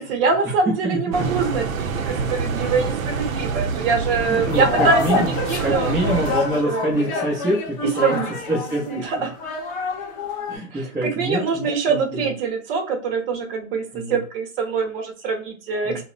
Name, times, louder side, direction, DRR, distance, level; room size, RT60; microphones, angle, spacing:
voice 1, 0.0-6.2 6.6-7.1 8.0-8.3 8.9-9.3 10.7-16.0, right 4 dB, 45° right, 3 dB, 0.7 m, -24 dB
sound 1, 1.1-6.6, right 5 dB, 80° right, 0.6 m, -26 dB
sound 2, 4.3-10.6, left 3 dB, 40° left, 0.7 m, -27 dB
voice 2, 4.3-5.3 5.6-8.2 8.5-9.0 10.5-12.3 13.9-14.2 15.8-16.0, right 1 dB, 10° right, -6 dB, 0.5 m, -25 dB
2.8 x 2.1 x 2.4 m, 0.39 s
hypercardioid pair, 125°, 40 cm